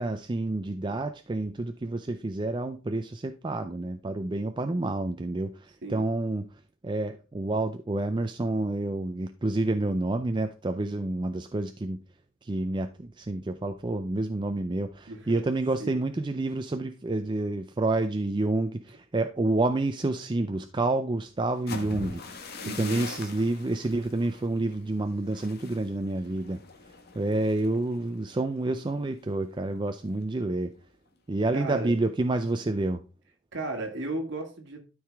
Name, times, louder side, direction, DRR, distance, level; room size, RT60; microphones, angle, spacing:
voice 1, 0.0-6.5 6.8-12.0 12.4-22.4 22.8-26.6 27.1-30.7 31.3-33.0, right 2 dB, 20° right, 0.4 m, -29 dB
voice 2, 15.1-15.4 15.8-16.0 22.6-23.1 31.5-32.1 33.5-34.8, right 2 dB, 55° right, 1.9 m, -35 dB
sound 1, 21.5-29.4 29.7-30.0 30.4-30.8, left 3 dB, 45° left, 1.2 m, -43 dB
12.5 x 4.8 x 3.4 m
head